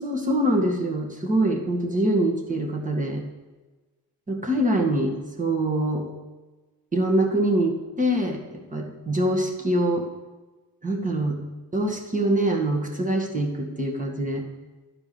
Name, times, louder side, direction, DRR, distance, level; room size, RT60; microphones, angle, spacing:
voice 1, 0.0-3.2 4.3-6.1 6.9-10.1 10.8-11.4 11.7-14.4, right 1 dB, 20° right, 1 dB, 2.0 m, -24 dB
11.5 x 4.8 x 7.0 m, 1.2 s
cardioid pair, 90°, 35 cm